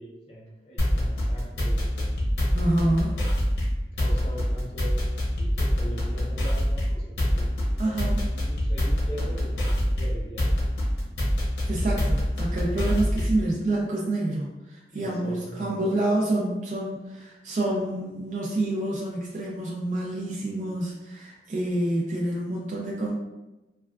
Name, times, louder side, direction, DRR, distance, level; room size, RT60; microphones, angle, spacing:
voice 1, 0.0-2.4 3.9-10.5 14.9-15.7, equal, 35° left, -3 dB, 0.5 m, -41 dB
sound 1, 0.8-13.5, equal, 70° left, 0.8 m, -25 dB
voice 2, 2.5-3.2 7.8-8.2 11.7-23.1, right 1 dB, 45° right, -3 dB, 0.4 m, -28 dB
3.1 x 2.2 x 2.3 m, 1.0 s
head